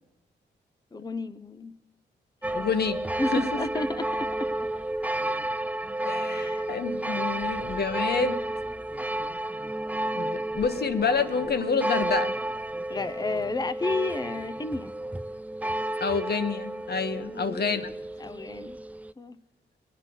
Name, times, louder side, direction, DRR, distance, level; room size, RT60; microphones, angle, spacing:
voice 1, 0.9-1.7 2.4-2.6 3.2-4.5 6.3-6.7 12.9-14.9 17.2-17.6 18.2-18.8 19.2-19.4, left 2 dB, 20° left, 12 dB, 0.7 m, -32 dB
sound 1, 2.4-19.1, right 1 dB, 10° right, 0.4 m, -31 dB
voice 2, 2.5-3.0 3.2-3.5 5.2-5.3 6.1-8.4 10.2-12.3 16.0-17.9, left 5 dB, 55° left, 10 dB, 1.3 m, -28 dB
22.5 x 9.2 x 5.3 m, 0.99 s
supercardioid pair, 45°, 19 cm